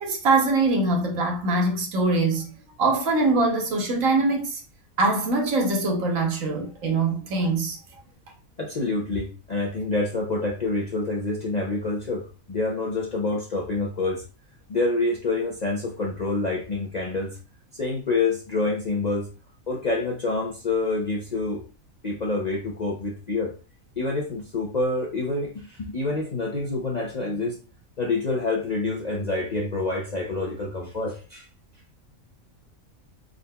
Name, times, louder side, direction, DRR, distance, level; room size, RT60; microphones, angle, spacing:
voice 1, 0.0-2.5 2.8-4.6 5.0-7.8, right 3 dB, 75° right, 1.3 m, -23 dB
voice 2, 8.6-14.2 14.7-17.4 17.8-19.3 19.7-21.6 22.0-23.5 24.0-27.6 28.0-31.5, left 3 dB, 50° left, 0.5 m, -27 dB
4.0 x 3.8 x 2.2 m
omnidirectional pair, 1.5 m